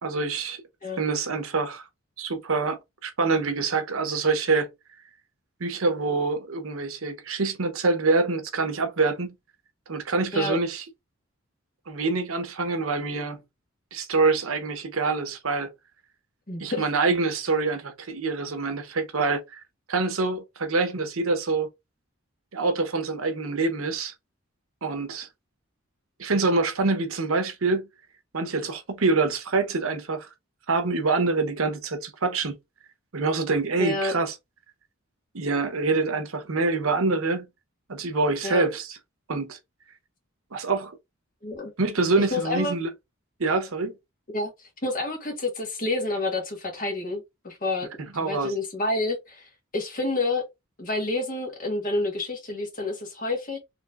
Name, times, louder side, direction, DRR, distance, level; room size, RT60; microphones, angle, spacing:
voice 1, 0.0-0.6 1.0-1.8 2.2-4.7 5.6-9.3 9.9-10.8 11.9-13.4 13.9-15.7 16.6-19.6 19.9-21.7 22.5-24.1 24.8-25.3 26.2-27.9 28.3-30.3 30.7-32.5 33.1-34.3 35.3-37.5 37.9-38.9 39.3-39.6 40.5-41.0 41.8-42.9 43.4-43.9 48.1-48.5, right 3 dB, 80° right, 0.9 m, -25 dB
voice 2, 16.5-16.8 33.8-34.1 38.4-38.7 41.4-41.7 42.2-42.7 44.3-44.5 44.8-47.9 48.2-50.4 50.8-53.6, left 2 dB, 40° left, 1.5 m, -29 dB
4.4 x 3.1 x 2.4 m
head